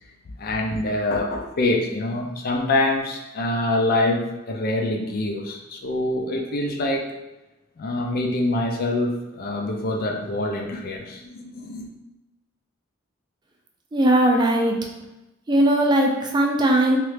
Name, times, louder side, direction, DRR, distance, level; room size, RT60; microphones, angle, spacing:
voice 1, 0.4-7.1 7.8-11.9, left 2 dB, 45° left, 2 dB, 0.4 m, -25 dB
voice 2, 13.9-14.8 15.5-17.0, right 1 dB, 20° right, 1 dB, 0.4 m, -19 dB
3.0 x 2.4 x 3.2 m, 1.0 s
head